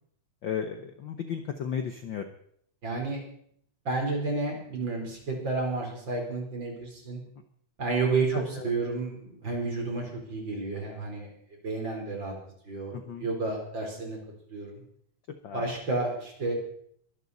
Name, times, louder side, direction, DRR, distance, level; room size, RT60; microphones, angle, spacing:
voice 1, 0.4-2.2 8.3-8.7 12.9-13.3 15.4-15.6, left 7 dB, 80° left, 7 dB, 1.0 m, -34 dB
voice 2, 2.8-3.2 3.8-7.2 7.8-11.3 11.6-12.3 12.6-14.2 14.5-14.8 15.5-16.5, right 3 dB, 35° right, 1 dB, 4.5 m, -31 dB
23.0 x 12.0 x 4.1 m, 0.65 s
omnidirectional pair, 3.5 m